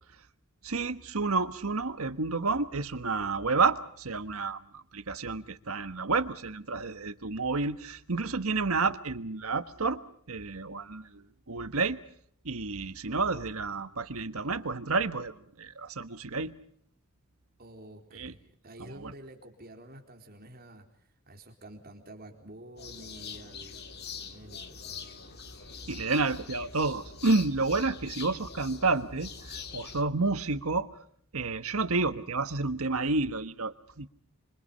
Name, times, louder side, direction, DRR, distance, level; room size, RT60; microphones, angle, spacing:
voice 1, 0.6-10.0 10.3-12.0 12.4-16.5 18.1-18.3 19.0-19.1 25.9-30.9 31.3-34.1, right 3 dB, 75° right, 11 dB, 1.4 m, -30 dB
voice 2, 17.6-20.9 21.3-25.1, right 1 dB, 45° right, 3 dB, 4.1 m, -49 dB
sound 1, 22.8-30.0, left 5 dB, 45° left, 2.1 m, -43 dB
26.5 x 25.5 x 5.6 m, 0.64 s
head